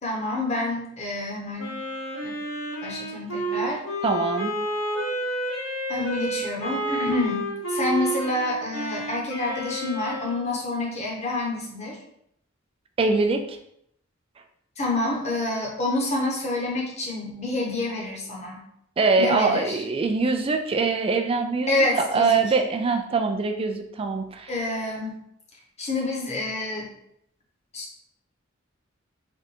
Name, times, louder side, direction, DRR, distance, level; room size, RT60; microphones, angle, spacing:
voice 1, 0.0-1.8 2.2-2.4 2.8-3.8 5.9-12.0 14.8-18.6 19.2-19.8 21.7-22.5 24.5-25.2 25.8-26.9 27.7-28.0, left 2 dB, 35° left, -2 dB, 1.0 m, -28 dB
Wind instrument woodwind instrument, 1.6-10.5, right 1 dB, 85° left, 1.3 m, -30 dB
voice 2, 4.0-4.5 13.0-13.6 19.0-24.5, right 4 dB, 30° right, 5 dB, 0.3 m, -23 dB
3.4 x 2.5 x 4.2 m, 0.74 s
head